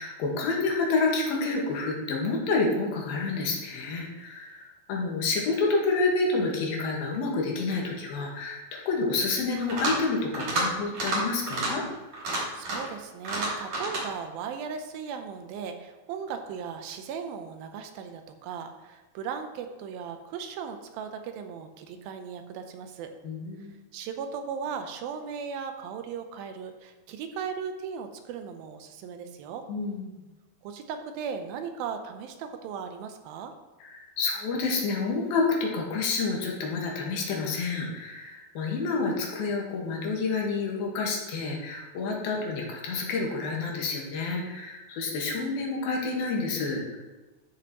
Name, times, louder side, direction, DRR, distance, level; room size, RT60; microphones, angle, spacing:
voice 1, 0.0-11.8 23.2-23.8 29.7-30.1 33.8-47.0, left 3 dB, 80° left, -1 dB, 3.3 m, -29 dB
sound 1, 9.6-10.0 10.3-10.7 10.9-11.2 11.5-11.7 12.1-12.9 13.3-14.0, right 2 dB, 50° right, 4.5 m, -29 dB
voice 2, 12.5-23.1 23.9-29.7 30.6-33.5, right 6 dB, 80° right, 7 dB, 2.4 m, -37 dB
13.0 x 6.7 x 3.0 m, 1.1 s
omnidirectional pair, 4.3 m